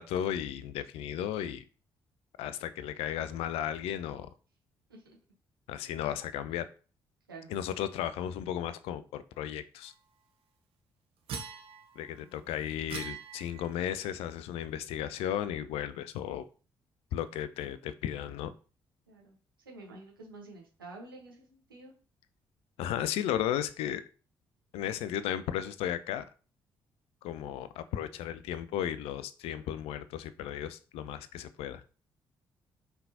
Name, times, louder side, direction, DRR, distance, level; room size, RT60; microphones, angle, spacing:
voice 1, 0.0-1.6 2.4-4.3 5.7-6.7 7.5-9.9 12.0-16.4 17.1-18.5 22.8-24.0 24.7-26.2 27.2-31.8, left 10 dB, 60° left, 0.4 m, -35 dB
sound 1, 11.3-12.1 12.9-13.9, right 6 dB, 55° right, 1.0 m, -42 dB
voice 2, 19.6-22.0, right 2 dB, 85° right, 1.1 m, -49 dB
5.6 x 3.5 x 2.7 m
figure-of-eight pair, 40°, 11 cm